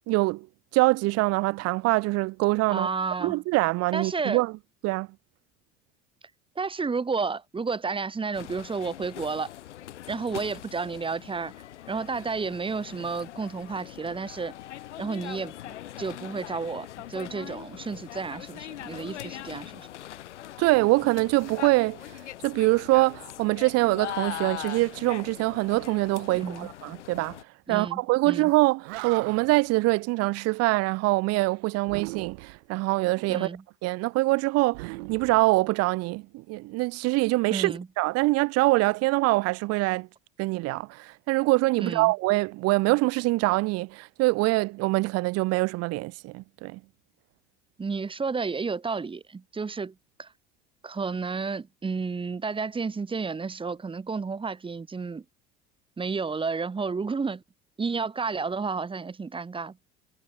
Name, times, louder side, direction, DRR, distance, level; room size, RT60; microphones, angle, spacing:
voice 1, 0.1-0.5 0.7-2.9 3.2-4.5 4.8-5.1 20.6-27.4 27.7-33.5 33.8-40.1 40.4-46.8, right 22 dB, 45° right, 0.6 m, -24 dB
voice 2, 2.7-3.4 3.9-4.4 6.6-9.5 10.1-11.5 11.9-14.5 15.0-15.5 16.0-19.9 26.3-26.7 27.7-28.5 33.3-33.6 37.5-37.9 41.8-42.1 47.8-49.9 50.2-50.3 50.8-55.2 56.0-57.4 57.8-59.8, right 4 dB, 15° right, 1.0 m, -31 dB
sound 1, 8.3-27.4, left 12 dB, 75° left, 0.8 m, -41 dB
Animal, 28.5-28.6 28.8-29.7 31.8-32.7 34.7-36.0, right 25 dB, 60° right, 2.3 m, -39 dB
figure-of-eight pair, 65°, 35 cm